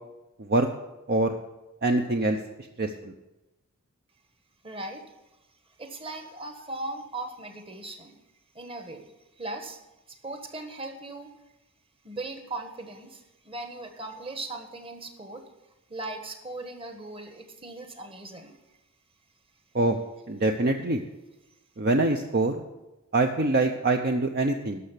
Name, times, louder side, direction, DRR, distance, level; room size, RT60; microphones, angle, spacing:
voice 1, 1.8-2.4 2.8-3.1 19.7-20.0 20.3-21.0 21.8-22.5 23.1-24.8, right 2 dB, 45° right, 5 dB, 0.7 m, -24 dB
voice 2, 4.6-5.0 5.8-8.2 8.5-9.1 9.4-9.8 10.1-11.3 12.0-15.5 15.9-18.6 20.0-20.1, right 2 dB, 25° right, 6 dB, 1.4 m, -38 dB
12.5 x 6.5 x 8.3 m, 1.0 s
head